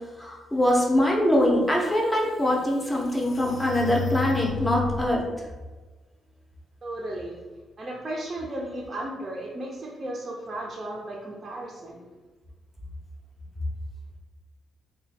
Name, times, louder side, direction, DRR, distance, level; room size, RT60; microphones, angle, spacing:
voice 1, 0.2-5.2, left 1 dB, 15° left, -2 dB, 0.7 m, -23 dB
sound 1, 2.1-5.2, left 6 dB, 50° left, 0.5 m, -33 dB
voice 2, 6.8-7.4 7.8-12.1, right 1 dB, 30° right, -4 dB, 0.5 m, -35 dB
2.9 x 2.2 x 4.1 m, 1.2 s
cardioid pair, 110°, 0 cm